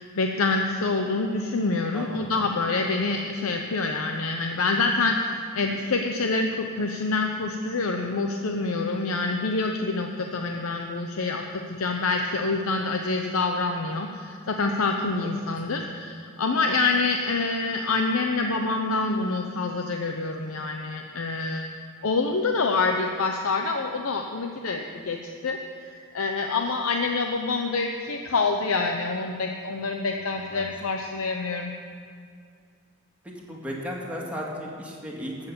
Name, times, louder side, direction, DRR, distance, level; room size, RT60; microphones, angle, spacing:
voice 1, 0.0-21.7 22.0-25.2 25.4-31.7, left 3 dB, 75° left, 3 dB, 0.7 m, -26 dB
voice 2, 30.1-30.7 33.2-35.5, equal, 5° right, -3 dB, 2.1 m, -36 dB
13.5 x 8.2 x 6.9 m, 2.2 s
head